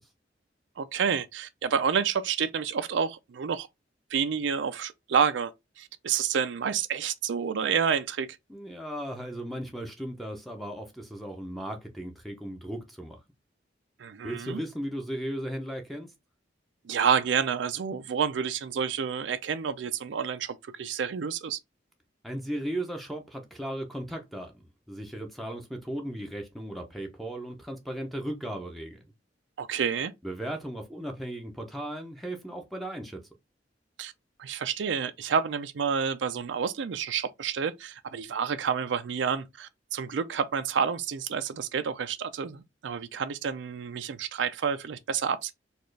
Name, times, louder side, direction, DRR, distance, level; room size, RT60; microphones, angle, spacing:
voice 1, 0.8-3.7 4.1-5.5 5.8-8.3 14.0-14.6 16.8-21.6 29.6-30.1 34.0-34.1 34.4-45.5, right 7 dB, 80° right, 0.4 m, -29 dB
voice 2, 8.5-13.2 14.2-16.1 22.2-29.0 30.2-33.2, right 1 dB, ahead, 0.6 m, -36 dB
4.2 x 2.4 x 3.2 m
head